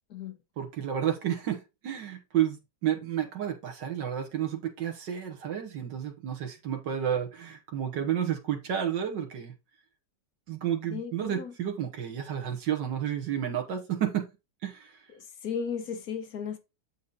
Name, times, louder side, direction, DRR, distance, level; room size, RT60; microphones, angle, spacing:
voice 1, 0.6-9.5 10.5-14.3 14.6-15.0, right 9 dB, 85° right, 2.0 m, -31 dB
voice 2, 10.9-11.5 15.1-16.6, left 6 dB, 65° left, 1.3 m, -35 dB
7.3 x 5.1 x 3.9 m
omnidirectional pair, 1.9 m